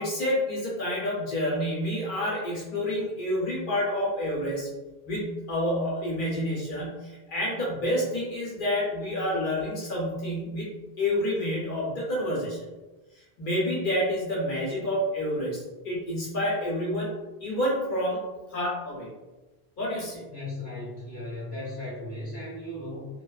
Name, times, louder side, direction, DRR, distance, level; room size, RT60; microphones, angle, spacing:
voice 1, 0.0-4.7 5.1-10.7 11.0-12.6 13.4-17.1 17.4-18.2 18.5-19.1 19.8-20.2, left 1 dB, 60° left, -4 dB, 0.8 m, -28 dB
voice 2, 20.2-23.1, left 1 dB, 25° right, -7 dB, 0.9 m, -36 dB
2.7 x 2.2 x 2.3 m, 1.1 s
omnidirectional pair, 1.0 m